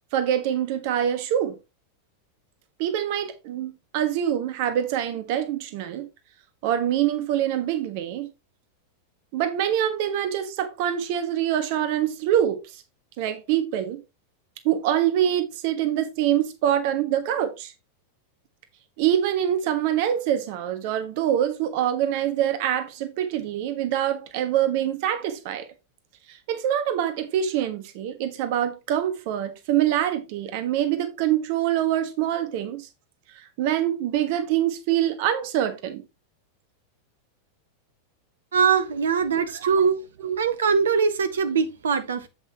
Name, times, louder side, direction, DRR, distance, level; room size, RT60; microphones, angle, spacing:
voice 1, 0.1-1.6 2.8-6.1 6.6-8.3 9.3-12.8 13.2-14.0 14.6-17.7 19.0-25.7 26.3-32.9 33.3-36.0 39.5-39.7 40.2-40.4, right 10 dB, 45° right, 1.3 m, -25 dB
voice 2, 38.5-40.0 40.4-42.3, right 6 dB, 65° right, 1.2 m, -22 dB
8.0 x 7.9 x 2.9 m
figure-of-eight pair, 90°, 0 cm